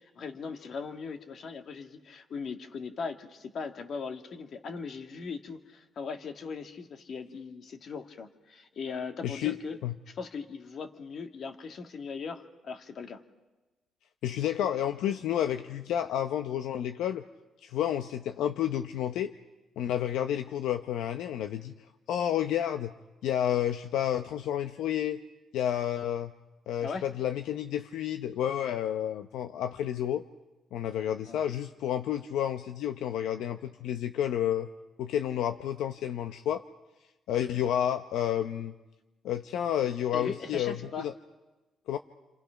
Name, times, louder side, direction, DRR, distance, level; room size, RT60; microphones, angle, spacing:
voice 1, 0.0-9.8 10.1-13.2 26.8-27.1 31.3-31.5 40.1-41.1, left 5 dB, 60° left, 5 dB, 2.2 m, -39 dB
voice 2, 9.2-9.6 9.8-9.9 14.2-17.2 17.6-19.3 19.8-21.7 22.1-22.9 23.2-25.2 25.5-26.3 26.7-30.2 30.7-34.7 35.0-36.6 37.3-38.7 39.2-41.1 41.9-42.0, left 10 dB, 85° left, 7 dB, 0.8 m, -30 dB
29.0 x 27.0 x 5.9 m, 1.1 s
cardioid pair, 90°, 0 cm